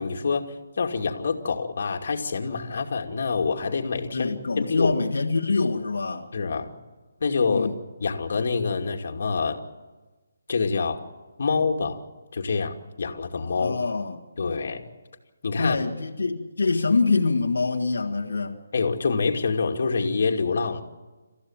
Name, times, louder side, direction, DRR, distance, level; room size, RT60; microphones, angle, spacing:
voice 1, 0.0-4.9 6.3-6.7 7.2-7.7 8.0-9.6 10.5-11.0 11.4-12.0 12.3-13.8 14.4-14.9 15.4-15.8 18.7-20.8, left 4 dB, 55° left, 2.5 m, -26 dB
voice 2, 4.1-6.3 7.5-7.7 13.6-14.2 15.6-18.6, left 4 dB, 85° left, 1.8 m, -25 dB
29.0 x 15.0 x 7.4 m
hypercardioid pair, 170°, 0 cm